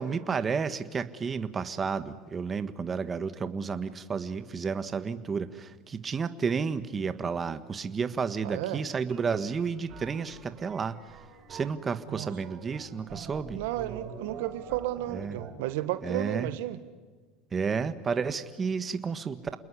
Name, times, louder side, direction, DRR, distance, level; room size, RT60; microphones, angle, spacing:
voice 1, 0.0-11.0 11.5-13.6 15.1-15.4 16.0-16.5 17.5-19.6, right 5 dB, 30° right, 11 dB, 1.5 m, -31 dB
voice 2, 8.4-8.8 12.1-12.3 13.5-16.8, right 14 dB, 80° right, 12 dB, 1.6 m, -33 dB
sound 1, 9.1-15.5, right 6 dB, 45° right, 6.9 m, -46 dB
28.5 x 20.5 x 9.7 m, 1.4 s
supercardioid pair, 100°, 0 cm